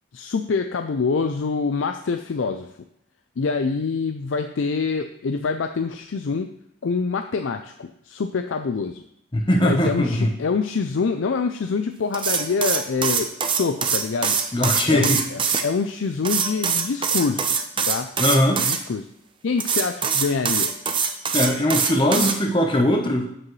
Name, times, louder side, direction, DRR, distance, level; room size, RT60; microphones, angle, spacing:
voice 1, 0.1-2.7 3.4-6.5 6.8-9.0 9.6-14.4 14.9-17.6 17.9-18.1 18.6-19.1 19.4-20.7, left 4 dB, 75° left, 7 dB, 0.5 m, -25 dB
voice 2, 9.3-10.3 14.5-15.2 18.2-18.6 21.3-23.3, left 1 dB, 25° left, 1 dB, 0.9 m, -20 dB
sound 1, 12.1-15.6 16.2-18.8 19.6-22.4, right 6 dB, 25° right, 0.6 m, -23 dB
8.3 x 7.6 x 3.2 m, 0.75 s
head